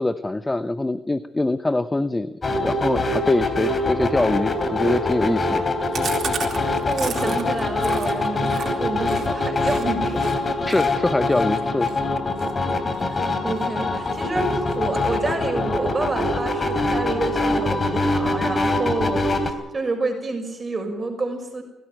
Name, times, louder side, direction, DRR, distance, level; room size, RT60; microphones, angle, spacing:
voice 1, 0.0-5.6 10.7-11.9, left 2 dB, 15° left, 12 dB, 0.9 m, -23 dB
sound 1, 2.4-19.5, left 2 dB, 35° left, 3.2 m, -24 dB
Chewing mastication, 5.9-9.8 10.2-10.4 10.7-13.7 14.0-14.4 14.7-15.5 15.8-15.9 16.2-16.3 16.6-17.2, right 7 dB, 55° right, 4.1 m, -35 dB
voice 2, 6.5-10.3 12.9-21.6, right 3 dB, 25° right, 4 dB, 6.2 m, -28 dB
21.5 x 16.0 x 9.3 m, 0.95 s
cardioid pair, 90°, 0 cm